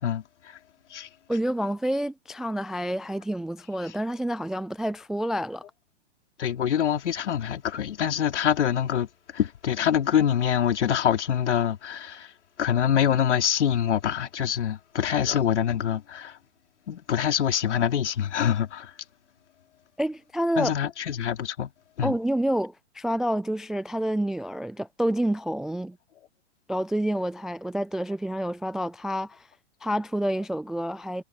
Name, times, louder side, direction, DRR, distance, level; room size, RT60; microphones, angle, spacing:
voice 1, 1.3-5.6 20.0-20.7 22.0-26.0 26.7-29.5 29.8-31.2, right 1 dB, ahead, 0.3 m, -28 dB
voice 2, 6.4-9.1 9.3-12.3 12.6-16.4 16.9-18.9 20.6-21.7 22.0-22.1, left 9 dB, 70° left, 4.1 m, -25 dB
hypercardioid pair, 115°, 36 cm